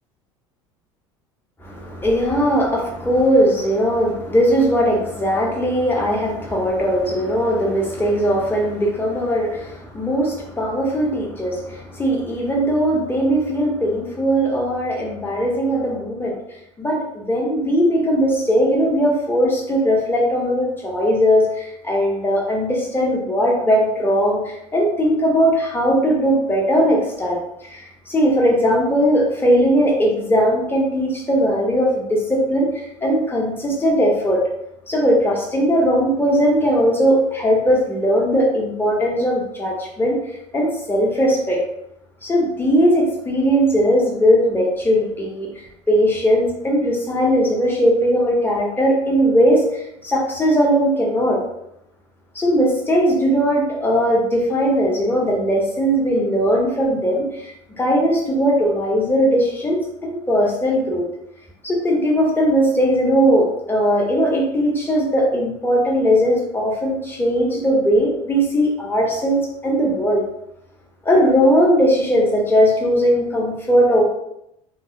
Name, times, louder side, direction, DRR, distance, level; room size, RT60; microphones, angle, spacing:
voice 1, 1.6-16.4 16.8-34.4 34.9-40.2 40.5-41.6 42.2-45.5 45.9-51.4 52.3-61.0 61.6-70.2 71.0-74.0, equal, 15° left, -2 dB, 0.8 m, -19 dB
2.2 x 2.1 x 2.6 m, 0.80 s
hypercardioid pair, 75°, 15 cm